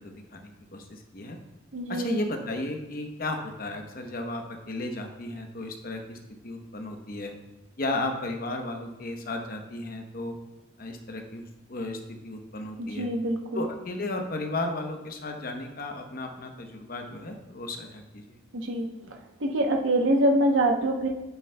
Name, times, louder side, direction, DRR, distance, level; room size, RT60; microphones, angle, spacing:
voice 1, 0.0-1.4 1.9-6.2 6.4-7.3 7.8-10.4 10.8-13.1 13.5-18.4, left 2 dB, 50° left, 4 dB, 0.9 m, -34 dB
voice 2, 1.7-2.2 12.8-13.7 18.5-18.9 19.4-21.1, right 1 dB, 75° right, 2 dB, 0.9 m, -25 dB
8.8 x 8.1 x 2.2 m, 0.98 s
head